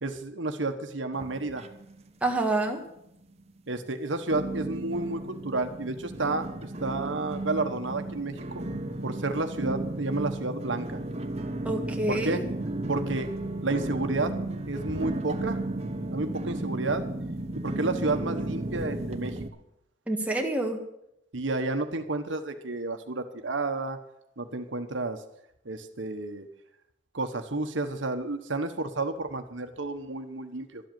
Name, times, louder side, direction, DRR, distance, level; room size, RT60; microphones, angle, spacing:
voice 1, 0.0-1.6 3.7-8.6 9.0-11.0 12.1-12.4 12.9-13.3 13.6-14.3 14.7-15.6 16.1-17.1 17.6-19.4 21.3-24.0 24.4-25.2 25.6-26.5 27.1-30.8, right 2 dB, 75° right, 7 dB, 1.2 m, -31 dB
sound 1, 1.1-2.1 2.3-3.0 3.5-3.6 4.3-19.5, right 1 dB, 35° right, 1.0 m, -34 dB
voice 2, 2.2-2.8 11.6-12.4 20.1-20.8, right 2 dB, 5° right, 1 dB, 1.7 m, -27 dB
12.5 x 8.0 x 9.2 m, 0.79 s
head